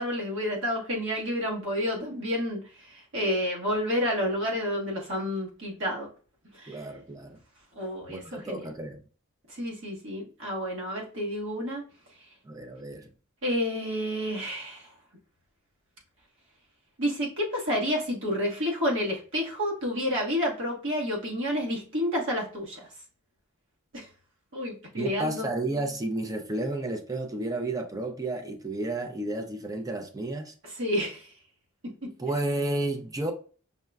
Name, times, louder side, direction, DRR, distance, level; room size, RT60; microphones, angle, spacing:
voice 1, 0.0-2.6 2.9-6.1 6.6-6.8 7.8-8.6 9.6-11.8 13.4-14.9 17.0-22.9 23.9-24.1 24.5-25.5 30.6-31.3, equal, 65° right, 1.2 m, -30 dB
voice 2, 6.7-7.4 8.1-9.0 12.4-13.1 25.0-30.5 32.2-33.3, right 2 dB, 15° right, 0.4 m, -32 dB
5.5 x 2.1 x 2.3 m
head